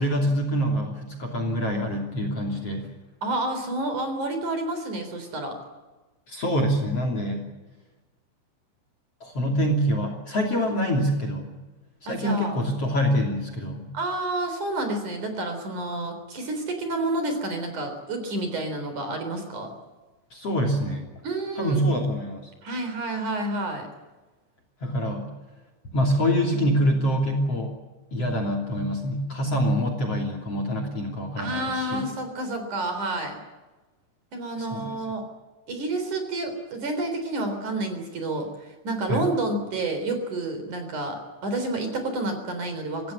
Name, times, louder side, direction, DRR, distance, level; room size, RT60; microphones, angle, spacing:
voice 1, 0.0-2.9 6.3-7.5 9.2-11.5 12.0-13.9 20.3-21.0 21.6-22.5 24.8-25.3 25.9-27.8 28.1-32.0 34.6-34.9 39.1-39.3, equal, 35° left, 4 dB, 3.6 m, -25 dB
voice 2, 3.2-5.6 12.1-12.6 13.9-19.7 21.2-21.8 22.6-23.9 31.4-33.4 34.3-35.2 35.7-43.1, right 2 dB, 45° right, 6 dB, 4.9 m, -29 dB
25.0 x 17.0 x 9.9 m, 1.2 s
omnidirectional pair, 5.3 m